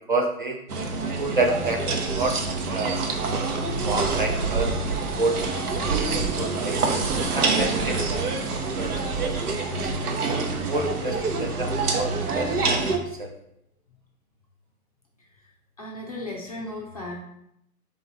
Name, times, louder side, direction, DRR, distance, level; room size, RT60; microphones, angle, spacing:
voice 1, 0.1-0.6 1.0-3.0 3.3-5.3 6.1-6.8 7.3-10.2 10.7-12.9 13.2-13.3, right 2 dB, 40° right, 2 dB, 0.4 m, -29 dB
sound 1, 0.7-13.0, right 3 dB, 85° right, 0.9 m, -26 dB
voice 2, 15.8-17.2, left 1 dB, 25° left, -2 dB, 0.4 m, -35 dB
3.8 x 3.0 x 3.9 m, 0.77 s
hypercardioid pair, 145°, 44 cm